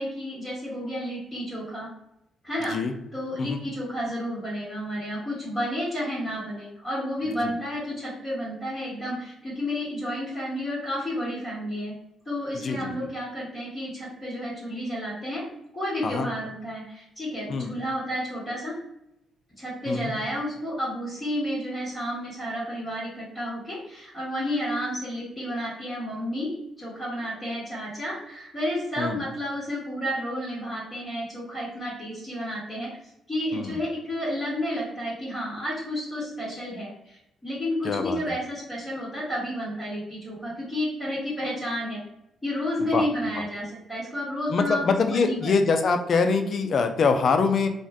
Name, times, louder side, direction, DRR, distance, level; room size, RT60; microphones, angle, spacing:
voice 1, 0.0-1.9 2.4-2.8 3.1-11.9 12.2-15.4 15.7-18.7 19.6-26.5 26.8-32.9 33.3-42.0 42.4-45.5, equal, 20° left, -10 dB, 1.3 m, -31 dB
voice 2, 12.6-12.9 16.0-16.3 17.5-17.7 19.9-20.1 29.0-29.2 33.5-33.8 37.8-38.2 42.9-43.1 44.5-47.7, left 4 dB, 50° left, 6 dB, 0.4 m, -24 dB
2.5 x 2.2 x 3.4 m, 0.84 s
cardioid pair, 90°, 0 cm